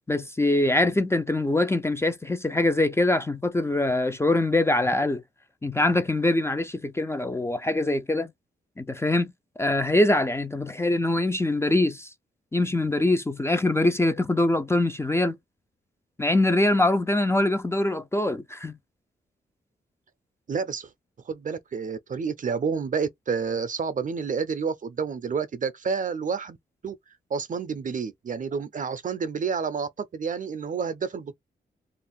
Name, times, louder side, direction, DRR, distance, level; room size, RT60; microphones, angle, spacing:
voice 1, 0.1-5.2 5.6-8.3 8.8-9.3 9.6-12.1 12.5-15.4 16.2-18.8, left 2 dB, 15° left, 0.4 m, -23 dB
voice 2, 20.5-20.9 21.3-26.6 26.8-27.0 27.3-31.3, right 5 dB, 45° right, 0.5 m, -29 dB
2.5 x 2.1 x 3.5 m
cardioid pair, 90°, 18 cm